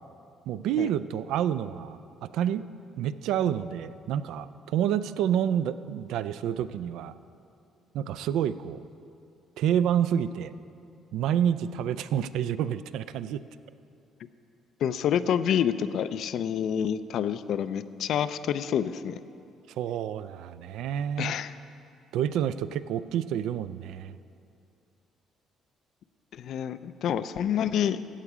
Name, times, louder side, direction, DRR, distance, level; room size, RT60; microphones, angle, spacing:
voice 1, 0.5-2.6 3.0-7.1 7.9-8.8 9.6-10.5 11.1-13.4 19.8-21.3 22.1-24.2, right 9 dB, 85° right, 14 dB, 0.4 m, -28 dB
voice 2, 14.8-19.2 21.2-21.6 26.3-28.1, left 9 dB, 60° left, 13 dB, 0.4 m, -28 dB
15.0 x 8.2 x 4.9 m, 2.6 s
cardioid pair, 145°, 0 cm